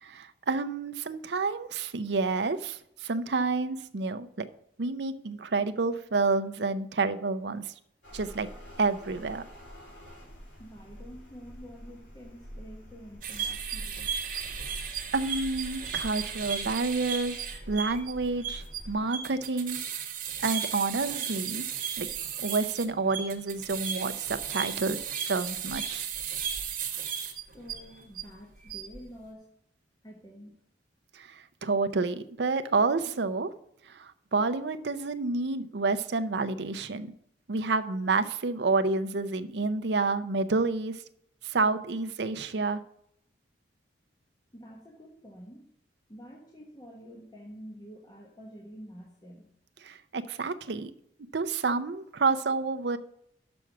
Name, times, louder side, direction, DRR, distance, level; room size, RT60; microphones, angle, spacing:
voice 1, 0.0-4.5 4.8-7.7 8.1-8.5 8.8-9.4 14.3-14.7 15.1-17.4 17.7-19.8 20.4-21.6 22.0-22.1 22.4-25.0 25.3-26.1 31.1-33.5 33.9-37.1 37.5-41.0 41.4-42.8 49.8-50.9 51.3-53.0, right 3 dB, 65° right, 10 dB, 0.6 m, -29 dB
sound 1, 8.0-19.0, equal, 80° left, 3.1 m, -47 dB
voice 2, 10.6-14.1 27.4-29.5 30.0-30.6 44.5-45.7 46.1-49.5, equal, 20° left, -1 dB, 1.2 m, -48 dB
sound 2, 13.2-28.2 28.6-29.0, right 8 dB, 45° right, 1.2 m, -35 dB
6.1 x 6.0 x 6.9 m, 0.74 s
head